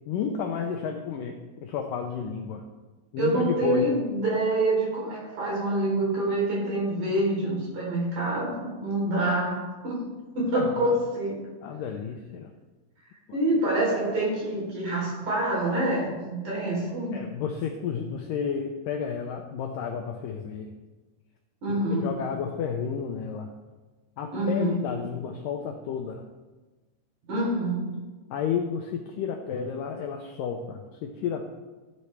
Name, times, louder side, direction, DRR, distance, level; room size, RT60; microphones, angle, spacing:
voice 1, 0.1-2.7 3.1-3.9 10.5-11.0 11.6-12.5 17.1-20.7 21.7-23.5 24.2-26.2 28.3-31.5, left 7 dB, 85° left, 3 dB, 1.9 m, -31 dB
voice 2, 3.2-10.1 10.3-11.4 13.3-17.2 21.6-22.1 24.3-24.8 27.3-27.9, right 1 dB, 50° right, -4 dB, 4.8 m, -26 dB
15.0 x 9.5 x 3.3 m, 1.2 s
omnidirectional pair, 4.8 m